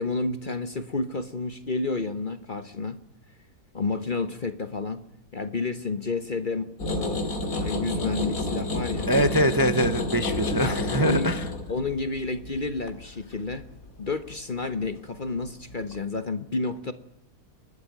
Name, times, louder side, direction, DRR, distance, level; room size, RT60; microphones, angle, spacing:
voice 1, 0.0-3.0 3.7-5.0 5.3-9.1 10.6-11.4 11.7-13.7 14.0-16.9, left 3 dB, 35° left, 11 dB, 1.1 m, -30 dB
sound 1, 6.8-15.0 15.5-16.0, left 2 dB, 60° left, 2.8 m, -30 dB
voice 2, 9.1-11.4, right 1 dB, 15° right, 10 dB, 0.9 m, -23 dB
27.5 x 12.0 x 9.4 m, 0.81 s
omnidirectional pair, 1.6 m